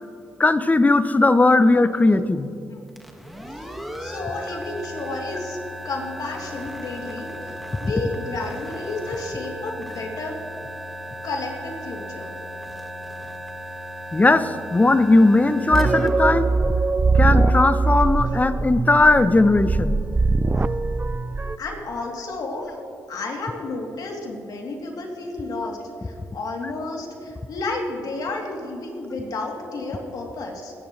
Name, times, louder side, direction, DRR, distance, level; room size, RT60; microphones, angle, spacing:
voice 1, 0.4-2.5 14.1-16.5 17.1-20.0, left 2 dB, 20° left, 12 dB, 0.7 m, -18 dB
sound 1, 2.9-17.5, equal, ahead, 1.7 m, -36 dB
voice 2, 4.0-5.6 5.8-10.4 11.2-12.3 21.6-22.8 23.1-25.8 26.0-30.7, left 2 dB, 65° left, -1 dB, 3.0 m, -31 dB
sound 2, 15.7-21.6, right 3 dB, 20° right, 0.5 m, -21 dB
22.0 x 11.5 x 3.2 m, 2.6 s
cardioid pair, 65°, 7 cm